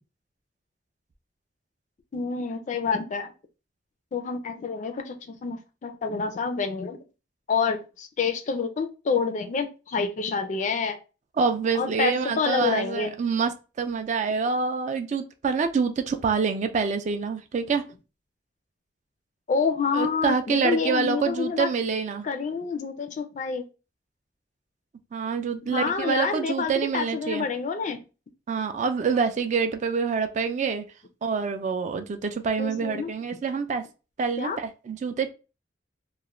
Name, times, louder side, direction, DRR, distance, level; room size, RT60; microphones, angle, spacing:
voice 1, 2.1-3.3 4.1-7.0 7.5-11.0 11.7-13.1 19.5-21.7 22.2-23.7 25.6-28.0 32.6-33.4 34.4-34.6, left 5 dB, 45° left, 0.3 m, -28 dB
voice 2, 11.4-17.8 19.9-22.3 25.1-27.5 28.5-30.8 31.2-33.9 34.2-35.3, right 5 dB, 40° right, 0.3 m, -26 dB
2.3 x 2.0 x 2.9 m
head